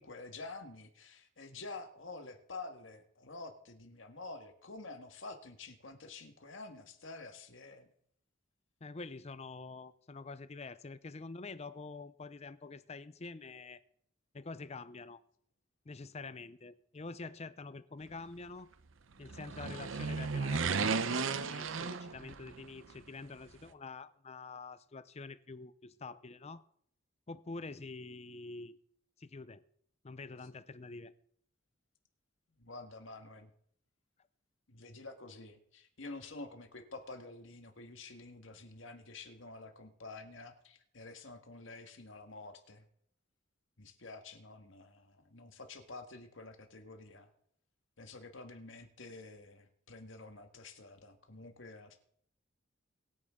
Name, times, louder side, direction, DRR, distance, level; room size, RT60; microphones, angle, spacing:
voice 1, 0.0-7.9 32.6-33.5 34.7-42.8 43.8-47.3 48.0-52.0, left 3 dB, 75° left, 1.7 m, -49 dB
voice 2, 8.8-13.8 14.3-15.2 15.9-18.7 19.2-26.6 27.3-28.8 29.2-29.6 30.0-31.1, left 3 dB, 35° left, 0.6 m, -46 dB
sound 1, 19.2-22.6 22.9-23.0, right 5 dB, 80° right, 0.7 m, -34 dB
23.5 x 9.5 x 3.7 m
head